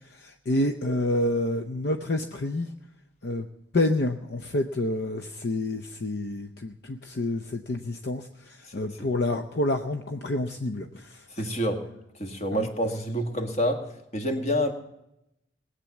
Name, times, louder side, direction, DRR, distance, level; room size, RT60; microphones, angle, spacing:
voice 1, 0.0-2.7 3.2-3.5 3.7-11.3 12.5-12.7, left 1 dB, 60° left, 7 dB, 0.7 m, -28 dB
voice 2, 11.4-11.8 12.2-13.9 14.1-14.7, equal, 35° left, 5 dB, 1.8 m, -27 dB
20.0 x 8.3 x 7.2 m, 0.83 s
head